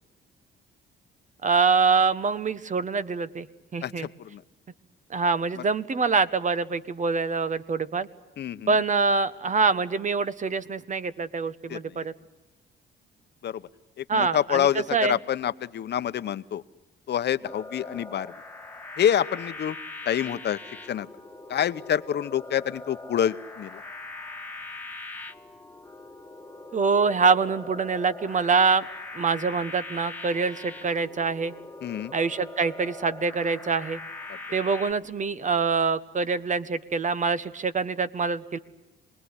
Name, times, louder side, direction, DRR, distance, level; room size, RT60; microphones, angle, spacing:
voice 1, 1.4-3.5 3.7-4.1 5.1-8.1 8.7-12.1 14.1-15.2 26.7-28.9 29.1-31.5 32.1-34.0 34.5-38.6, right 4 dB, 40° right, 14 dB, 1.3 m, -25 dB
voice 2, 3.8-4.4 5.6-5.7 8.4-8.8 11.7-12.0 13.4-13.6 14.0-16.6 17.1-18.3 19.0-19.8 20.0-20.6 20.9-21.1 21.5-23.8 31.8-32.1, left 10 dB, 60° left, 12 dB, 1.0 m, -27 dB
sound 1, 17.4-34.9, left 2 dB, 10° left, 1.8 m, -41 dB
27.5 x 20.5 x 9.8 m, 1.0 s
cardioid pair, 90°, 20 cm